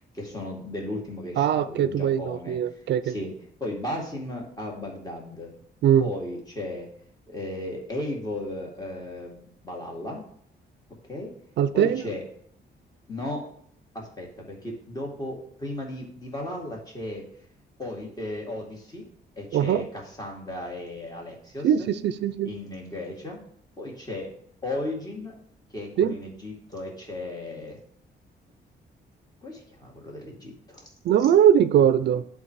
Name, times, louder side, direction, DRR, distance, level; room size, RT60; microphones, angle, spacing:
voice 1, 0.0-2.6 3.0-3.3 3.6-5.6 6.0-6.9 7.3-10.2 11.0-11.3 11.7-12.2 13.1-13.4 13.9-17.3 17.8-19.1 19.4-21.9 22.4-23.4 23.8-24.3 24.6-25.4 25.7-27.8 29.4-30.9, left 1 dB, 20° left, 2.2 m, -35 dB
voice 2, 1.4-3.1 5.8-6.1 11.6-12.0 19.5-19.9 21.6-22.5 26.0-26.1 31.0-32.3, right 9 dB, 70° right, 0.4 m, -21 dB
10.5 x 3.8 x 4.6 m
cardioid pair, 150°, 18 cm